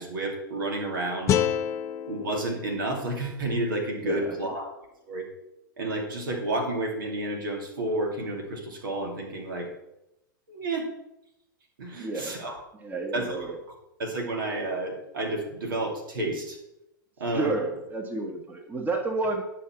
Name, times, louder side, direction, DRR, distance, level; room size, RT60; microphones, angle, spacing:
voice 1, 0.0-1.4 2.1-4.7 5.1-5.3 5.8-9.7 10.5-10.9 11.8-12.6 13.1-13.5 14.0-16.6 17.2-17.5, right 2 dB, 75° right, 2 dB, 2.6 m, -30 dB
sound 1, 1.3-4.4, left 10 dB, 25° left, 0.5 m, -30 dB
voice 2, 4.0-4.4 12.0-12.4 12.8-13.6 17.3-19.4, right 2 dB, 15° right, 4 dB, 1.3 m, -30 dB
9.9 x 5.8 x 5.9 m, 0.87 s
hypercardioid pair, 115°, 11 cm